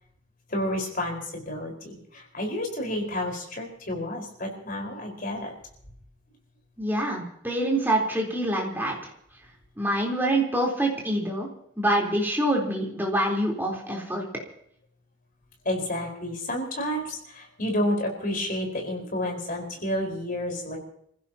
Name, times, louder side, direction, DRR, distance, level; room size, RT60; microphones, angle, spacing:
voice 1, 0.5-5.5 15.6-20.8, left 1 dB, 45° left, 1 dB, 4.8 m, -30 dB
voice 2, 6.8-8.9 9.8-11.5 11.8-14.3, right 1 dB, 10° right, -2 dB, 3.8 m, -25 dB
29.0 x 16.0 x 2.9 m, 0.69 s
head